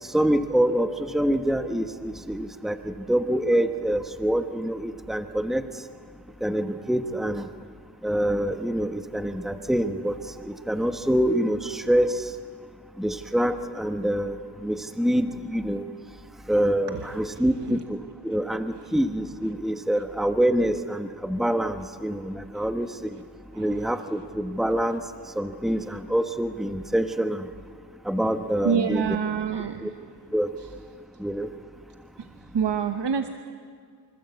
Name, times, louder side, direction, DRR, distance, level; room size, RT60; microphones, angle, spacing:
voice 1, 0.0-5.8 6.4-7.5 8.0-12.3 13.0-14.4 14.6-15.8 16.5-23.2 23.6-25.0 25.3-27.5 28.0-29.2 29.8-29.9 30.3-30.5 31.2-31.5, right 1 dB, ahead, 8 dB, 1.3 m, -26 dB
voice 2, 17.3-17.8 18.8-18.9 22.5-22.6 23.5-24.0 28.6-29.9 30.6-30.7 32.2-33.3, right 7 dB, 85° right, 7 dB, 1.2 m, -28 dB
27.0 x 25.5 x 8.2 m, 2.2 s
wide cardioid pair, 90°, 41 cm